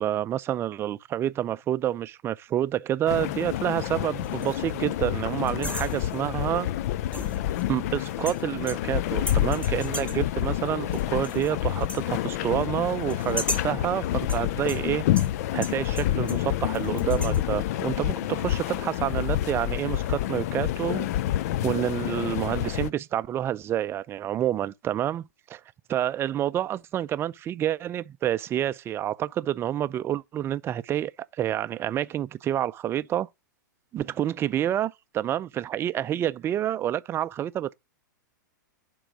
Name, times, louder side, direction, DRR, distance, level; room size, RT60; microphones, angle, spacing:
voice 1, 0.0-6.7 7.7-15.1 15.5-21.1 21.6-25.6 25.9-31.1 31.4-33.3 33.9-37.7, right 11 dB, 25° right, 0.5 m, -28 dB
sound 1, 3.1-22.9, left 13 dB, 50° left, 0.5 m, -28 dB
sound 2, 4.2-4.7 5.5-6.3 7.1-7.8 8.3-9.0 9.3-10.3 10.9-11.5 11.8-12.1 13.1-13.8 14.3-16.5 16.7-17.4, left 1 dB, 10° left, 1.8 m, -37 dB
10.0 x 3.8 x 6.1 m
hypercardioid pair, 105°, 11 cm